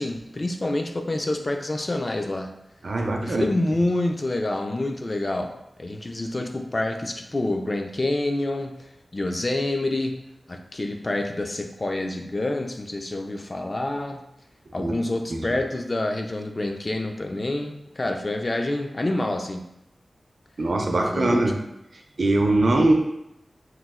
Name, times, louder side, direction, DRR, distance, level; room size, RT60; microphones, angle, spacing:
voice 1, 0.0-2.5 3.2-8.9 9.1-10.2 10.5-14.2 14.7-19.6 21.1-21.5, left 2 dB, 35° left, 4 dB, 0.3 m, -27 dB
voice 2, 2.8-3.5 14.8-15.0 15.3-15.6 20.6-21.5 22.2-22.9, right 2 dB, 60° right, 2 dB, 0.4 m, -22 dB
3.0 x 2.0 x 3.5 m, 0.83 s
wide cardioid pair, 95°, 0 cm